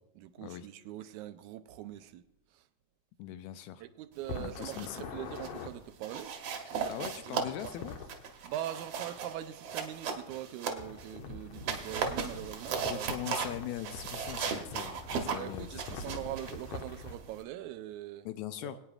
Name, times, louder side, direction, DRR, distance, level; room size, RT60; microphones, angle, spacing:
voice 1, 0.2-2.3 2.5-2.7 3.8-6.3 6.7-7.8 8.4-13.6 15.3-18.3 18.6-18.8, right 13 dB, 85° right, 2.0 m, -42 dB
voice 2, 3.2-3.8 4.4-5.1 6.9-8.0 12.8-16.1 18.3-18.8, left 12 dB, 85° left, 2.0 m, -41 dB
sound 1, 4.2-5.7 7.4-8.1 10.8-17.2, left 4 dB, 70° left, 1.9 m, -44 dB
sound 2, 4.4-5.0 5.3-5.6 6.0-11.1 11.5-17.4, right 6 dB, 65° right, 2.0 m, -37 dB
22.0 x 9.2 x 2.4 m
omnidirectional pair, 3.4 m